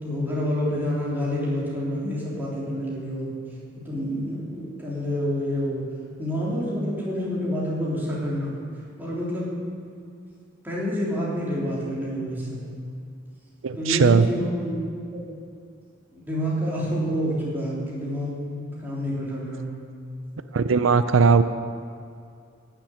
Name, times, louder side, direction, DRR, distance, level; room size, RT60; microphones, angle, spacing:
voice 1, 0.0-3.3 3.8-5.9 6.2-8.5 9.0-9.5 10.6-12.6 13.7-14.7 15.1-15.3 16.1-19.7, equal, 10° right, -7 dB, 3.4 m, -28 dB
voice 2, 13.6-14.3 20.5-21.4, right 5 dB, 85° right, 11 dB, 0.5 m, -18 dB
11.0 x 7.4 x 9.4 m, 2.4 s
head